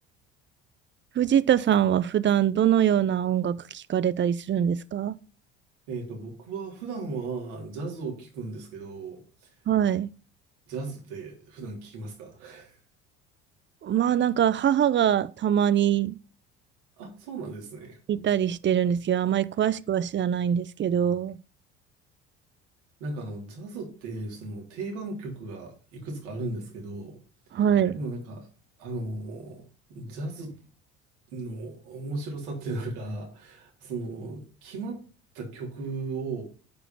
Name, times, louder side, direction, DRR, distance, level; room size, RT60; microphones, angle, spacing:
voice 1, 1.2-5.2 9.7-10.1 13.8-16.2 18.1-21.4 27.5-28.0, right 9 dB, 35° right, 0.6 m, -23 dB
voice 2, 5.9-9.2 10.7-12.8 17.0-18.0 23.0-27.2 27.9-28.5 28.8-29.6 29.9-30.6 31.3-35.0 35.3-36.4, right 3 dB, 80° right, 3.6 m, -36 dB
9.4 x 5.0 x 5.7 m
hypercardioid pair, 65°, 34 cm